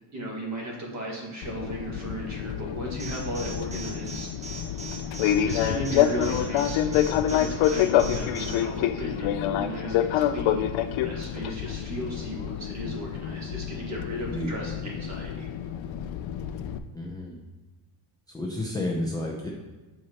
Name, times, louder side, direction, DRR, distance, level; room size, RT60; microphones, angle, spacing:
voice 1, 0.1-4.3 5.4-6.9 7.3-15.5, equal, 35° right, -2 dB, 1.8 m, -36 dB
Fixed-wing aircraft airplane, 1.4-16.8, left 10 dB, 70° left, 0.6 m, -27 dB
Alarm, 3.0-8.5, right 4 dB, 15° right, 0.9 m, -40 dB
voice 2, 16.9-17.4 18.3-19.5, left 1 dB, 10° left, -3 dB, 0.5 m, -31 dB
7.8 x 5.9 x 2.9 m, 1.2 s
cardioid pair, 160°, 49 cm